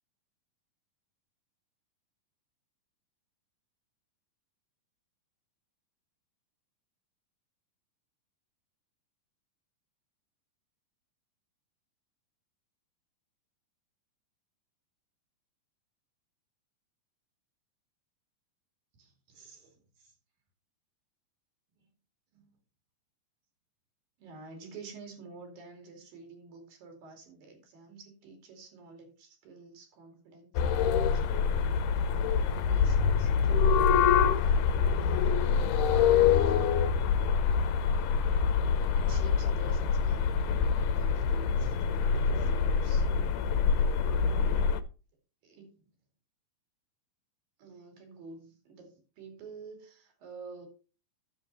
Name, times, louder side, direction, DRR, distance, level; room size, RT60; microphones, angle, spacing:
voice 1, 19.0-20.1 21.8-21.9 22.3-22.5 24.2-31.8 32.2-33.8 34.3-35.3 38.5-43.1 44.2-44.7 45.4-45.8 47.6-50.7, right 4 dB, 80° right, 3 dB, 4.4 m, -50 dB
sound 1, 30.5-44.8, left 6 dB, 75° left, 2.0 m, -25 dB
9.9 x 7.3 x 4.2 m, 0.34 s
omnidirectional pair, 4.0 m